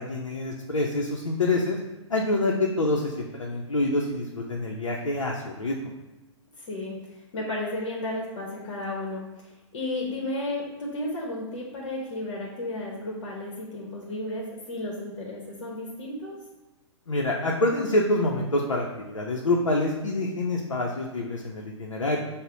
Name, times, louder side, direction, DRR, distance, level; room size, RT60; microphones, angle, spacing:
voice 1, 0.0-1.8 2.1-5.9 17.1-22.2, left 2 dB, 85° left, -1 dB, 0.5 m, -26 dB
voice 2, 6.6-7.0 7.3-16.5, left 1 dB, 55° left, -2 dB, 0.9 m, -33 dB
5.4 x 2.1 x 3.8 m, 1.1 s
figure-of-eight pair, 115°, 16 cm